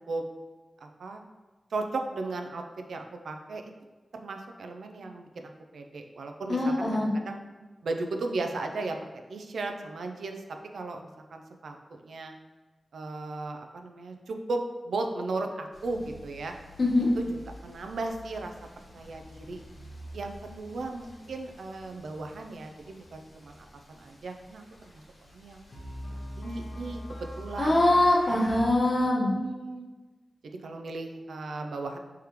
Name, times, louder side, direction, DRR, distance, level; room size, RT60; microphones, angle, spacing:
voice 1, 0.8-1.2 1.7-2.6 2.9-3.6 4.1-7.4 7.8-9.0 9.3-10.4 10.7-12.3 12.9-16.5 17.2-17.3 17.6-18.5 18.9-19.6 20.1-24.6 24.9-25.0 25.3-25.6 26.1-27.8 28.3-28.4 29.3-29.9 30.6-32.0, right 3 dB, 90° right, 4 dB, 0.4 m, -36 dB
voice 2, 6.5-7.1 16.8-17.1 27.6-29.3, left 1 dB, 50° left, -5 dB, 1.4 m, -23 dB
sound 1, 15.7-28.6, equal, 75° left, 1.1 m, -45 dB
4.9 x 3.5 x 3.0 m, 1.2 s
cardioid pair, 55°, 0 cm